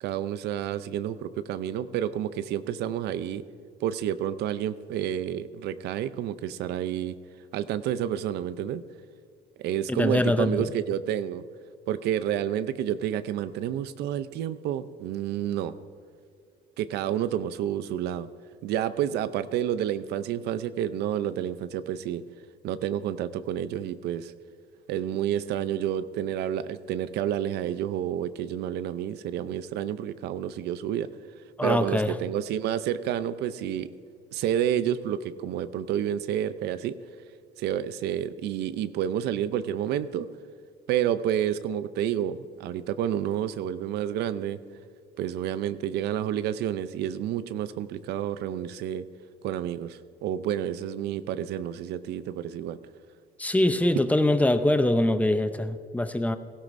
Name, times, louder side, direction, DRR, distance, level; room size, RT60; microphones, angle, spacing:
voice 1, 0.0-3.4 3.8-7.2 7.5-8.8 9.6-11.4 11.9-15.7 16.8-18.3 18.6-22.2 22.6-24.3 24.9-31.1 31.6-33.9 34.3-37.0 37.6-40.3 40.9-44.6 45.2-49.0 49.4-52.8, right 10 dB, 75° right, 13 dB, 0.5 m, -29 dB
voice 2, 9.9-10.7 31.6-32.1 53.4-56.4, left 1 dB, 10° left, 10 dB, 0.6 m, -23 dB
17.0 x 15.5 x 2.6 m, 2.2 s
cardioid pair, 110°, 17 cm